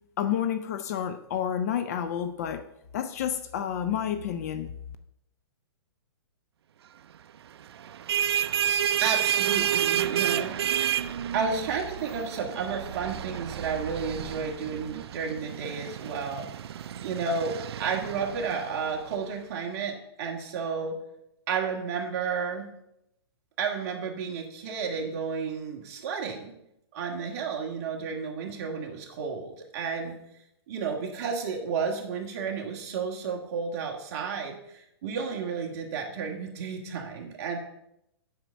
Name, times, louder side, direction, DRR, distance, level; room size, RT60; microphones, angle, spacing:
voice 1, 0.2-2.7 2.9-4.7, left 9 dB, 35° left, 0.5 m, -30 dB
sound 1, 7.8-19.1, right 10 dB, 70° right, 0.4 m, -30 dB
voice 2, 9.0-10.6 11.3-16.5 17.0-20.9 21.5-22.7 23.6-26.5 26.9-30.1 30.7-37.6, right 5 dB, 35° right, 1.7 m, -32 dB
7.9 x 5.5 x 6.3 m
hypercardioid pair, 165°, 14 cm